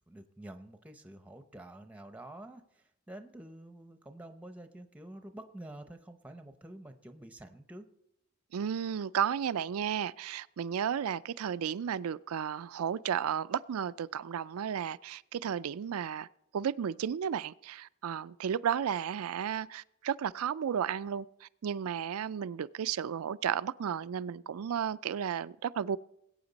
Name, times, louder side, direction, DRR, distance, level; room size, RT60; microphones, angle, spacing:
voice 1, 0.1-7.9, right 1 dB, 5° right, 0.7 m, -48 dB
voice 2, 8.5-16.3 16.5-26.0, right 8 dB, 85° right, 0.4 m, -33 dB
20.0 x 8.7 x 4.0 m
head